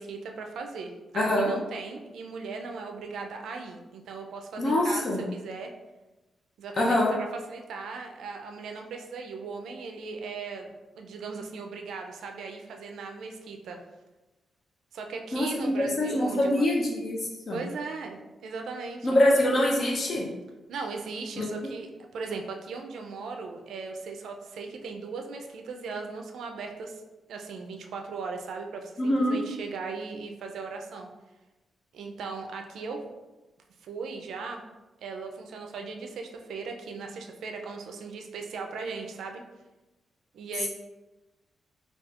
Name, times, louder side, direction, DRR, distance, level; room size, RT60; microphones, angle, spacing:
voice 1, 0.0-5.7 6.6-13.8 14.9-16.7 17.5-19.1 20.7-27.0 27.3-31.1 31.9-33.0 33.8-34.6 35.0-39.4 40.3-40.7, right 4 dB, 80° right, 3 dB, 0.4 m, -38 dB
voice 2, 1.1-1.5 4.6-5.2 6.8-7.1 15.3-17.2 17.5-17.6 19.0-20.3 21.4-21.5 29.0-29.4, left 1 dB, 40° left, -2 dB, 0.5 m, -24 dB
4.1 x 2.3 x 2.4 m, 1.1 s
wide cardioid pair, 140°, 0 cm